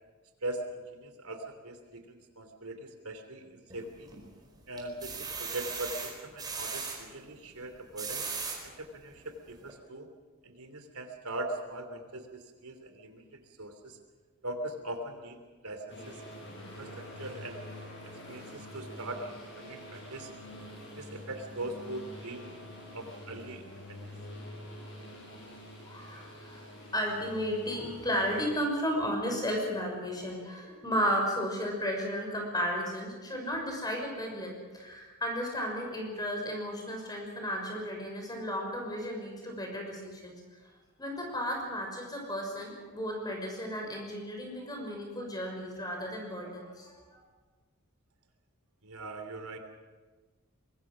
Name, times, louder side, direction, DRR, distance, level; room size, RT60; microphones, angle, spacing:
voice 1, 0.4-4.1 4.7-8.2 8.6-10.1 10.4-14.0 14.4-15.4 15.6-16.2 16.8-17.6 18.0-20.3 21.0-22.5 22.9-24.1 48.8-49.6, right 1 dB, 80° right, 6 dB, 3.2 m, -41 dB
sound 1, 3.7-4.3 4.8-7.0 7.7-8.6 9.2-9.3 9.6-9.7, right 5 dB, 20° right, 4.8 m, -37 dB
sound 2, 15.9-28.5, left 1 dB, 55° left, 7.8 m, -46 dB
voice 2, 25.9-26.6 26.9-40.4 41.0-47.2, equal, 20° left, 1 dB, 6.0 m, -34 dB
24.5 x 22.0 x 6.3 m, 1.3 s
head